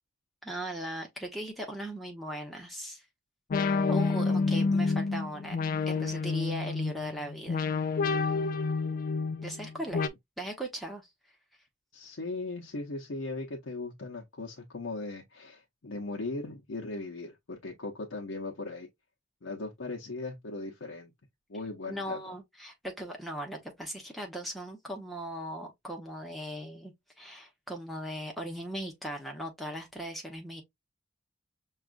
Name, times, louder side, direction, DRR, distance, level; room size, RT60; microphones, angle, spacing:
voice 1, 0.4-3.1 3.6-5.6 5.9-7.7 9.4-10.1 10.4-11.1 21.9-30.6, equal, ahead, 0.8 m, -38 dB
sound 1, 3.5-10.1, left 4 dB, 45° left, 0.3 m, -29 dB
voice 2, 11.9-18.9 19.4-21.1 21.5-22.2, left 3 dB, 75° left, 0.7 m, -38 dB
5.9 x 2.4 x 2.4 m
head